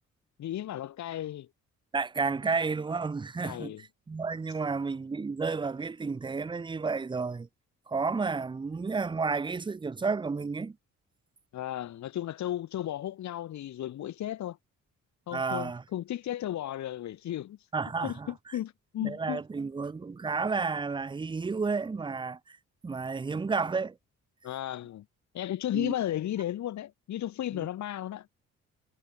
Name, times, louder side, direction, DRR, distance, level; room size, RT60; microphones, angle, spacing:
voice 1, 0.4-1.5 3.4-3.8 11.5-14.6 15.3-17.7 18.0-19.4 24.4-25.0 25.3-28.3, left 12 dB, 70° left, 1.5 m, -34 dB
voice 2, 1.9-3.7 4.1-7.5 7.9-10.8 15.3-15.8 17.7-18.3 19.0-22.6 22.8-24.0 25.7-25.9 27.5-27.7, right 4 dB, 15° right, 0.6 m, -31 dB
cardioid pair, 90°, 30 cm